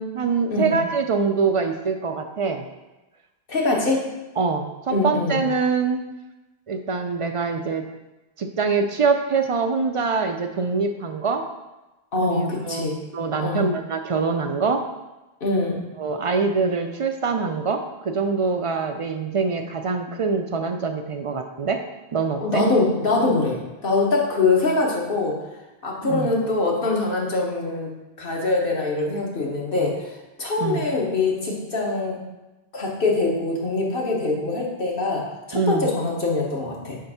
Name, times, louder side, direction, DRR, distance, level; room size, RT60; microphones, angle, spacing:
voice 1, 0.0-2.6 4.4-6.0 6.7-7.9 8.4-11.4 12.2-12.9 13.1-14.8 16.0-21.8 22.1-22.6 26.0-26.4 30.6-30.9 35.5-35.9, right 4 dB, 55° right, 5 dB, 0.3 m, -24 dB
voice 2, 3.5-4.0 4.9-5.4 12.1-12.9 13.4-13.7 15.4-15.8 22.4-25.4 25.8-27.9 28.2-32.2 32.7-37.0, left 3 dB, 60° left, -2 dB, 1.4 m, -23 dB
7.3 x 2.6 x 5.5 m, 1.0 s
omnidirectional pair, 1.0 m